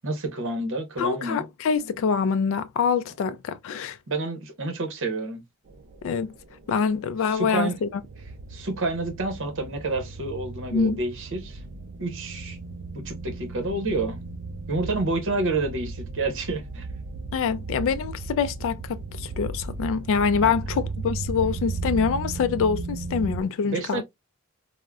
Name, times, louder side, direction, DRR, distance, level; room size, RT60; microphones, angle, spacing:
voice 1, 0.0-1.5 4.1-5.4 7.3-7.8 8.5-11.6 12.0-12.6 12.9-14.2 14.7-16.9 20.4-20.5 23.6-24.0, right 2 dB, 60° right, 0.9 m, -29 dB
voice 2, 1.0-4.0 6.0-6.3 6.7-7.9 10.7-11.0 17.3-24.0, left 6 dB, 65° left, 0.3 m, -25 dB
sound 1, 5.7-23.4, right 3 dB, 45° right, 0.4 m, -35 dB
3.6 x 2.1 x 2.2 m
head